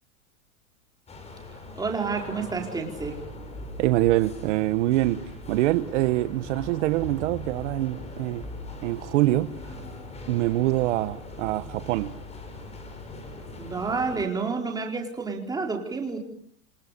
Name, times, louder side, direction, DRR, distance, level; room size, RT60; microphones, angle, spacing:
sound 1, 1.1-14.3, left 2 dB, 15° left, 5.4 m, -40 dB
voice 1, 1.7-3.2 13.6-16.2, right 4 dB, 10° right, 2 dB, 4.4 m, -29 dB
voice 2, 3.8-5.2 5.5-8.4 8.8-9.7 10.3-12.1, right 16 dB, 55° right, 12 dB, 1.3 m, -24 dB
28.5 x 25.0 x 6.8 m, 0.63 s
supercardioid pair, 155°, 42 cm